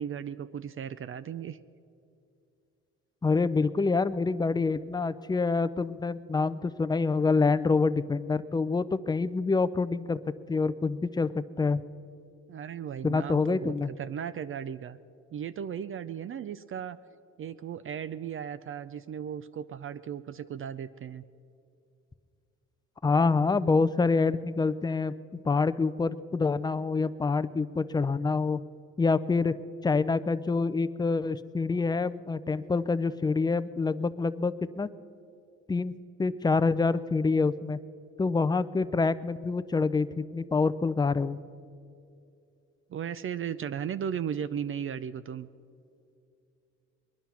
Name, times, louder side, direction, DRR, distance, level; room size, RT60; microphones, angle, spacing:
voice 1, 0.0-1.6 12.5-15.0 15.3-17.0 17.4-21.2 42.9-45.5, right 8 dB, 45° right, 14 dB, 0.5 m, -36 dB
voice 2, 3.2-10.2 10.5-11.8 13.0-13.9 23.0-28.6 29.0-29.5 29.8-34.9 35.7-35.9 36.2-37.8 38.2-41.4, left 4 dB, 15° left, 14 dB, 0.4 m, -26 dB
21.5 x 10.5 x 5.8 m, 2.5 s
cardioid pair, 90°, 30 cm